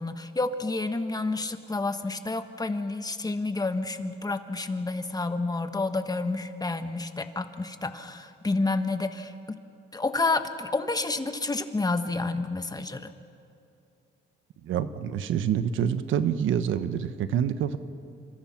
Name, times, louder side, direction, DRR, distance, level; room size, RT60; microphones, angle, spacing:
voice 1, 0.0-9.6 9.9-13.1, left 3 dB, 20° left, 8 dB, 1.5 m, -29 dB
voice 2, 14.6-17.8, right 9 dB, 80° right, 11 dB, 1.2 m, -27 dB
28.0 x 25.5 x 6.0 m, 2.6 s
cardioid pair, 90°, 20 cm